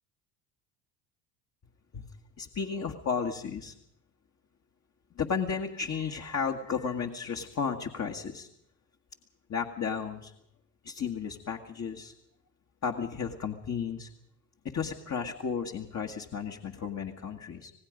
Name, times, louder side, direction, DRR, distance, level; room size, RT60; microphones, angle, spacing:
voice 1, 2.4-3.7 5.2-8.5 9.5-10.3 10.8-12.1 12.8-14.1 14.7-17.7, left 6 dB, 30° left, 3 dB, 1.9 m, -33 dB
26.5 x 18.5 x 5.2 m, 0.76 s
hypercardioid pair, 70°, 50 cm